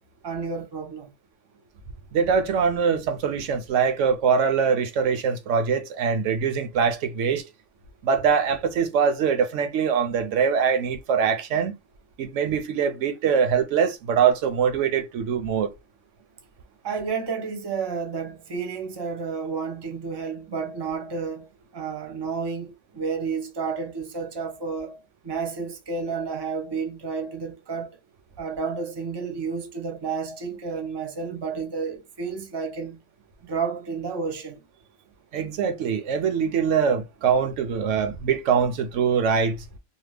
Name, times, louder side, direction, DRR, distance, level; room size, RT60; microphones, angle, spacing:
voice 1, 0.2-1.1 16.8-21.5 21.7-28.0 28.4-33.0 33.4-34.6, right 5 dB, 25° right, 0.6 m, -31 dB
voice 2, 2.1-7.4 8.0-11.7 12.2-15.7 35.3-39.6, right 6 dB, 75° right, 0.9 m, -23 dB
2.8 x 2.1 x 3.3 m
omnidirectional pair, 1.3 m